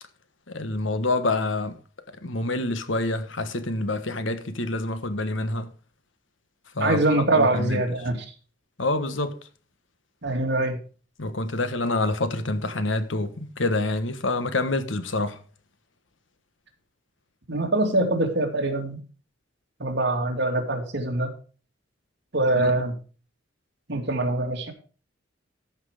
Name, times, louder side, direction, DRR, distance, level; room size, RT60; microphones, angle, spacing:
voice 1, 0.5-1.8 2.2-5.7 6.7-7.0 7.3-7.8 8.8-9.3 11.2-15.4 22.5-22.7, left 2 dB, 90° left, 1.4 m, -27 dB
voice 2, 6.8-8.3 10.2-10.8 17.5-19.0 19.8-21.3 22.3-22.9 23.9-24.7, right 2 dB, 65° right, 2.5 m, -24 dB
13.5 x 6.1 x 5.0 m
head